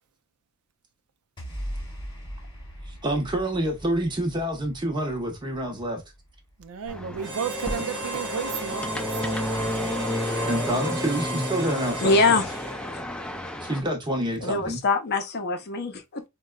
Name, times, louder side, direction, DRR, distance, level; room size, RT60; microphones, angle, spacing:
sound 1, 1.4-7.8, equal, 20° left, 0.9 m, -40 dB
voice 1, 2.9-6.0 10.4-12.4 13.6-14.8, right 1 dB, 20° right, 0.8 m, -27 dB
voice 2, 6.6-9.4, right 7 dB, 85° right, 0.4 m, -33 dB
sound 2, 6.9-13.8, left 1 dB, 5° left, 0.3 m, -31 dB
Harmonica, 7.2-13.2, right 1 dB, 55° right, 0.8 m, -34 dB
voice 3, 12.0-12.4 14.4-16.2, left 3 dB, 50° left, 0.6 m, -23 dB
3.9 x 2.2 x 2.2 m
head